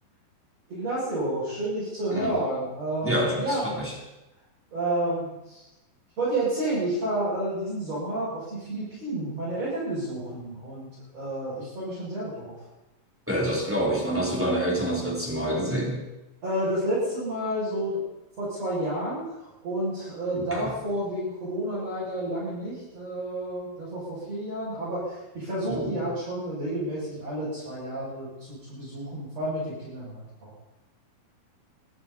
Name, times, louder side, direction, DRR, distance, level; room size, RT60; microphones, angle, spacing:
voice 1, 0.7-3.9 4.7-5.6 6.2-12.5 16.4-18.0 18.4-30.5, right 1 dB, 40° right, -11 dB, 8.0 m, -30 dB
voice 2, 3.0-3.9 13.3-16.0 20.4-20.7 25.7-26.0, equal, 5° right, -3 dB, 3.0 m, -27 dB
23.5 x 13.5 x 4.3 m, 0.97 s
omnidirectional pair, 4.3 m